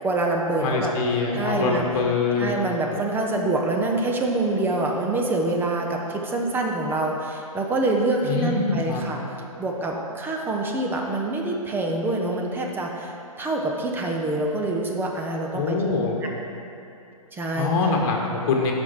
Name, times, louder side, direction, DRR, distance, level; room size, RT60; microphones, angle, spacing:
voice 1, 0.0-0.9 1.3-1.9 2.4-9.2 9.6-16.0 17.3-17.7, right 2 dB, 10° right, 0 dB, 0.8 m, -26 dB
voice 2, 0.6-2.6 8.2-9.0 15.5-16.2 17.5-18.7, left 4 dB, 40° left, 0 dB, 1.7 m, -24 dB
13.0 x 5.3 x 4.6 m, 2.9 s
figure-of-eight pair, 120°, 19 cm